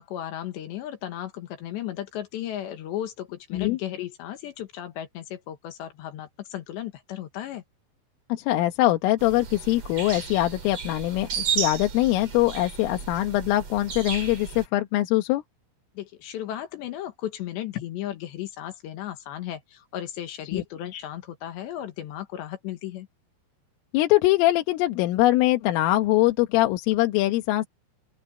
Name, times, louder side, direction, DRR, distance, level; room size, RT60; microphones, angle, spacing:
voice 1, 0.0-7.6 15.9-23.1, left 12 dB, 70° left, 3.4 m, -35 dB
voice 2, 8.3-15.4 20.5-20.6 23.9-27.7, left 16 dB, 85° left, 3.8 m, -22 dB
sound 1, 9.2-14.7, right 7 dB, 35° right, 2.6 m, -33 dB
open air
omnidirectional pair, 5.8 m